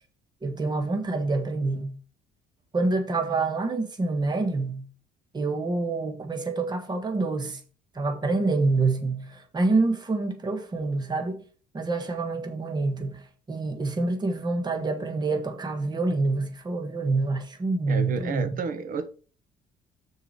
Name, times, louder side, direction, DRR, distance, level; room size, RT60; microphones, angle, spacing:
voice 1, 0.4-1.9 2.7-4.8 5.3-7.6 7.9-11.4 11.7-18.5, right 3 dB, 25° right, 1.6 m, -27 dB
voice 2, 17.9-19.1, right 5 dB, 55° right, 1.4 m, -31 dB
6.7 x 4.8 x 5.5 m
cardioid pair, 110°, 17 cm